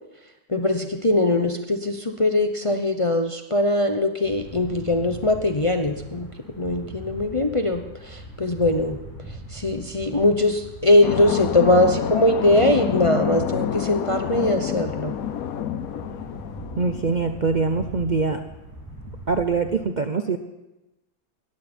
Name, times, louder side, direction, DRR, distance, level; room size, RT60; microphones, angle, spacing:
voice 1, 0.5-6.3 6.6-9.0 9.5-15.2, left 1 dB, 30° left, 5 dB, 0.7 m, -21 dB
sound 1, 4.2-19.7, equal, 10° right, 6.5 m, -41 dB
sound 2, 11.0-17.4, left 10 dB, 70° left, 1.2 m, -28 dB
voice 2, 16.8-18.4 19.3-20.4, right 4 dB, 40° right, 7 dB, 0.6 m, -23 dB
19.5 x 15.0 x 4.4 m, 0.97 s
omnidirectional pair, 1.6 m